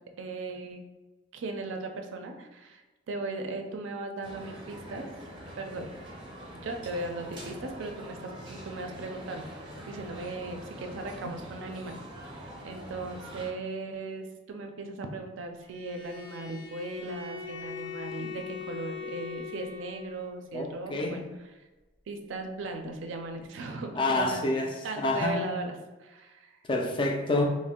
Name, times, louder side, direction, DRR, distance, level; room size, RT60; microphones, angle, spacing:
voice 1, 0.2-0.8 1.3-2.8 3.1-5.1 5.6-5.9 6.5-9.5 9.9-12.0 12.3-21.2 22.1-24.5 24.8-25.7 26.0-26.6, right 2 dB, 75° right, 4 dB, 0.4 m, -37 dB
sound 1, 4.2-13.5, equal, 25° right, 0.6 m, -44 dB
Bowed string instrument, 15.6-20.4, left 7 dB, 70° left, 0.8 m, -41 dB
voice 2, 20.5-21.3 24.0-25.4 26.7-27.5, left 2 dB, 25° left, 2 dB, 0.3 m, -28 dB
2.5 x 2.1 x 3.6 m, 1.2 s
head